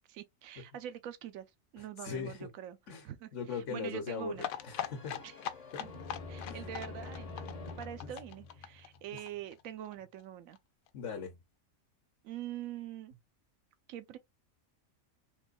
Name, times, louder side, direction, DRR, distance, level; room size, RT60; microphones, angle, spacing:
voice 1, 0.1-1.5 1.7-2.8 3.0-4.5 5.2-5.3 5.8-5.9 6.3-7.5 7.8-10.6 12.2-13.1 13.9-14.2, right 11 dB, 80° right, 1.1 m, -44 dB
voice 2, 1.8-2.5 2.9-3.1 3.3-5.2 5.7-5.8 6.5-6.7 8.0-8.1 10.9-11.4, left 5 dB, 65° left, 1.1 m, -40 dB
sound 1, 4.4-9.9 10.2-10.3 10.5-10.6 10.9-11.0, left 10 dB, 85° left, 1.0 m, -41 dB
sound 2, 4.4-9.2, left 3 dB, 35° left, 0.7 m, -47 dB
3.8 x 3.0 x 2.4 m
omnidirectional pair, 1.4 m